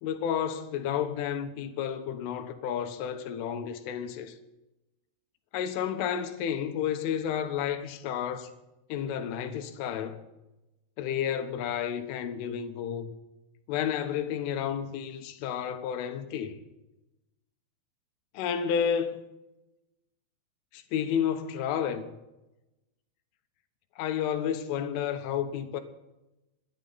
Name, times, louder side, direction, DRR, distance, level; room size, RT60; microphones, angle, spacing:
voice 1, 0.0-4.4 5.5-8.5 8.9-10.2 11.0-13.1 13.7-16.6 18.4-19.3 20.7-22.1 24.0-25.8, left 8 dB, 80° left, 3.7 m, -31 dB
27.5 x 11.5 x 4.1 m
omnidirectional pair, 5.6 m